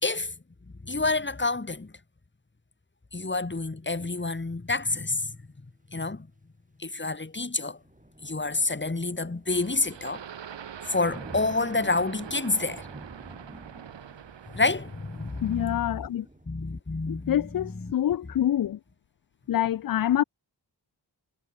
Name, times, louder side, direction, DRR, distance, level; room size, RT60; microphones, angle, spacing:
voice 1, 0.0-0.3 0.8-1.9 3.1-5.4 5.9-6.3 6.8-7.8 8.2-10.2 10.9-12.9 14.5-16.0 16.5-17.9, left 3 dB, 25° left, 1.8 m, -28 dB
sound 1, 7.8-16.5, right 1 dB, 20° right, 4.4 m, -49 dB
sound 2, 9.5-15.8, right 8 dB, 80° right, 1.2 m, -44 dB
voice 2, 15.4-16.3 17.1-18.8 19.5-20.2, left 11 dB, 50° left, 0.5 m, -26 dB
cardioid pair, 45°, 43 cm